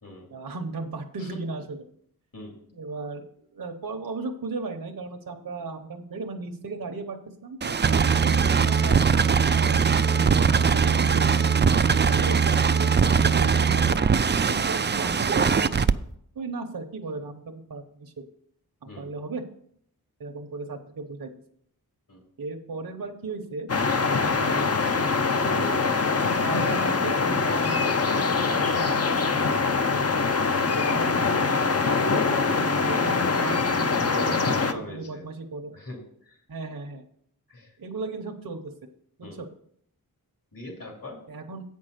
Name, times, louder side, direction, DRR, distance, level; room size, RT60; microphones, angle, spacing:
voice 1, 0.3-1.8 2.7-3.2 3.5-9.0 9.5-11.5 12.1-15.8 16.3-18.1 18.8-19.4 20.2-21.3 22.4-23.7 24.2-25.9 26.3-29.4 30.4-35.7 36.5-37.0 37.8-38.7 39.2-39.5 41.3-41.6, right 3 dB, 60° right, 3 dB, 0.9 m, -36 dB
sound 1, 7.6-15.9, right 6 dB, 30° right, 0.4 m, -21 dB
sound 2, 23.7-34.7, left 4 dB, 40° left, 0.7 m, -24 dB
voice 2, 33.9-35.2 35.6-36.4 37.5-37.7 39.2-39.4 40.5-41.2, left 2 dB, 65° left, 0 dB, 2.9 m, -41 dB
8.4 x 5.5 x 6.5 m, 0.67 s
wide cardioid pair, 65°, 37 cm